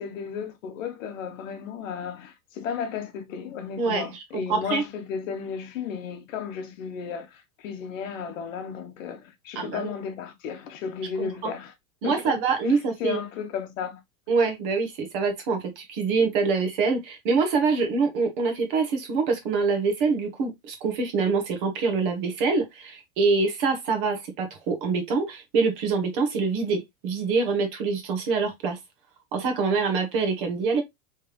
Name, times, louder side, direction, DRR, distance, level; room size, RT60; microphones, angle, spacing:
voice 1, 0.0-11.7 12.0-12.4 12.6-14.0, left 7 dB, 60° left, 0.9 m, -34 dB
voice 2, 4.5-4.8 9.6-9.9 11.2-11.3 12.0-13.2 14.3-28.8 29.3-30.8, right 4 dB, 35° right, 1.0 m, -25 dB
3.4 x 3.3 x 3.0 m
supercardioid pair, 170°, 45 cm